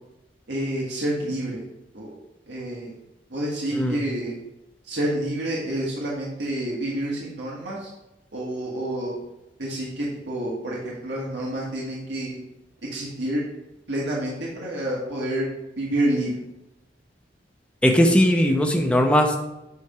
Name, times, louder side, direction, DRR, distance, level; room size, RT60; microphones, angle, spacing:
voice 1, 0.5-1.6 1.9-2.1 2.5-2.9 3.3-4.3 4.8-7.9 8.3-9.1 9.6-12.4 12.9-13.4 13.9-15.5 15.8-16.4, right 1 dB, 85° right, -5 dB, 1.9 m, -28 dB
voice 2, 17.8-19.4, equal, 5° left, 3 dB, 0.8 m, -18 dB
9.4 x 3.5 x 5.8 m, 0.94 s
head